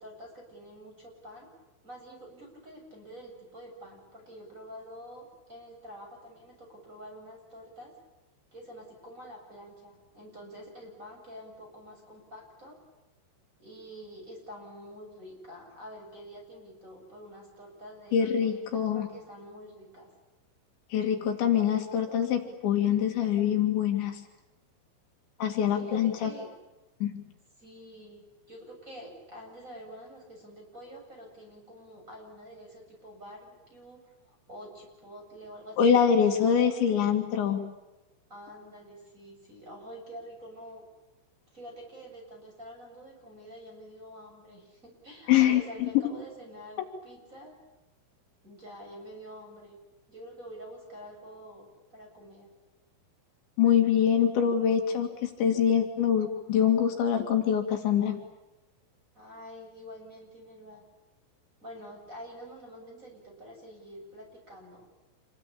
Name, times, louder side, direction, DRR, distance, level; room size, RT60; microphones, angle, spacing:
voice 1, 0.0-1.5 1.8-7.9 8.5-12.8 13.6-20.1 25.4-26.5 27.6-34.0 34.3-35.9 36.2-37.0 38.3-40.8 41.5-47.5 48.4-49.8 50.1-52.5 59.1-60.8 61.6-64.9, equal, 15° right, 1 dB, 7.8 m, -47 dB
voice 2, 18.1-19.1 20.9-24.2 25.4-26.3 27.0-27.2 35.8-37.6 45.3-45.9 53.6-58.2, left 8 dB, 70° left, 4 dB, 4.4 m, -24 dB
27.5 x 23.5 x 8.7 m, 1.1 s
omnidirectional pair, 5.6 m